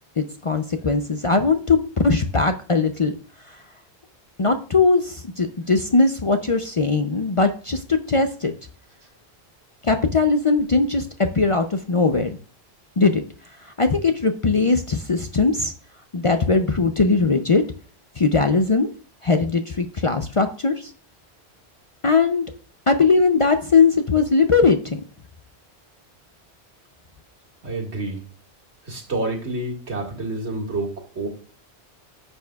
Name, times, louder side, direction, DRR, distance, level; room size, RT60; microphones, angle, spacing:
voice 1, 0.2-3.2 3.5-3.6 4.4-8.5 9.8-12.4 13.0-13.2 13.6-15.7 16.1-17.6 18.2-18.9 19.2-20.9 22.0-22.4 22.9-25.0, left 4 dB, 40° left, 7 dB, 0.5 m, -20 dB
voice 2, 27.6-28.2 28.8-31.3, right 2 dB, 85° right, 1 dB, 2.2 m, -28 dB
10.5 x 6.9 x 2.3 m, 0.40 s
omnidirectional pair, 1.1 m